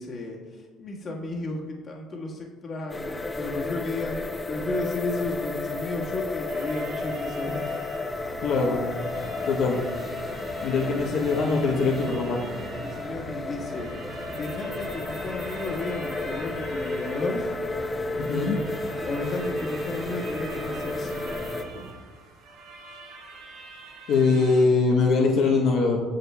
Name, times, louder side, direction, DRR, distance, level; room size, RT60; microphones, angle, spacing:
voice 1, 0.0-7.7 12.8-13.9 14.3-17.6 19.0-21.3, left 2 dB, 45° left, -1 dB, 1.5 m, -33 dB
sound 1, 2.9-21.6, left 3 dB, 20° left, 0.7 m, -32 dB
sound 2, 6.5-24.7, right 4 dB, 75° right, 1.5 m, -46 dB
sound 3, 8.1-21.9, right 2 dB, 40° right, 1.8 m, -42 dB
voice 2, 8.4-8.9 9.5-9.8 10.6-12.4 18.2-18.6 24.1-26.0, left 4 dB, 75° left, -2 dB, 1.0 m, -22 dB
9.1 x 6.7 x 2.3 m, 1.4 s
supercardioid pair, 90°, 0 cm